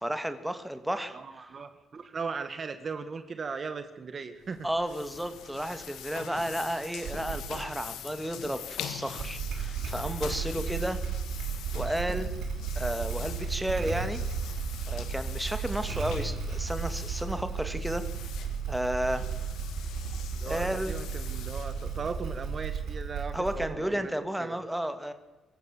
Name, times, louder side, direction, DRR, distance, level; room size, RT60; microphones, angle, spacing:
voice 1, 0.0-1.2 4.6-11.0 11.7-12.3 12.7-14.2 14.9-18.0 18.7-19.2 20.4-20.9 23.3-25.1, right 1 dB, 5° right, 8 dB, 2.3 m, -32 dB
voice 2, 1.1-4.7 20.4-24.1 24.4-24.6, right 5 dB, 40° right, 9 dB, 1.6 m, -38 dB
sound 1, 4.4-22.9, left 9 dB, 80° left, 1.9 m, -44 dB
Motorcycle / Engine starting, 7.0-7.7 9.0-23.9, right 6 dB, 70° right, 3.6 m, -34 dB
25.0 x 14.5 x 7.5 m, 1.1 s
cardioid pair, 90°, 0 cm